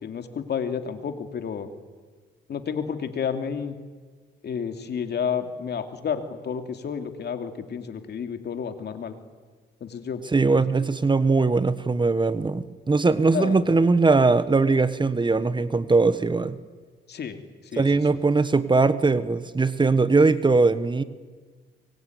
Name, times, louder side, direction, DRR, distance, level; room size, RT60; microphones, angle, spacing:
voice 1, 0.0-1.7 2.5-3.8 4.4-9.2 9.8-10.2 10.5-10.7 13.3-13.6 17.1-17.4 17.7-18.2, left 7 dB, 55° left, 7 dB, 2.8 m, -31 dB
voice 2, 10.3-16.6 17.8-21.0, right 3 dB, 25° right, 14 dB, 1.3 m, -20 dB
24.5 x 22.5 x 9.5 m, 1.4 s
cardioid pair, 90°, 20 cm